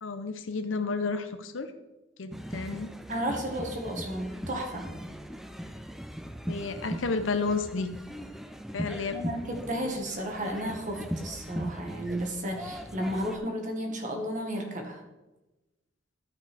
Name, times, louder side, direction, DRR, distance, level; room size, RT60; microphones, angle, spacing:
voice 1, 0.0-1.7 2.2-2.9 6.5-7.9 8.7-9.2, left 4 dB, 80° left, 10 dB, 0.7 m, -31 dB
sound 1, 2.3-13.4, equal, ahead, 0.4 m, -39 dB
voice 2, 3.1-4.9 9.1-15.0, equal, 40° right, 2 dB, 1.6 m, -33 dB
13.0 x 5.8 x 3.5 m, 1.1 s
head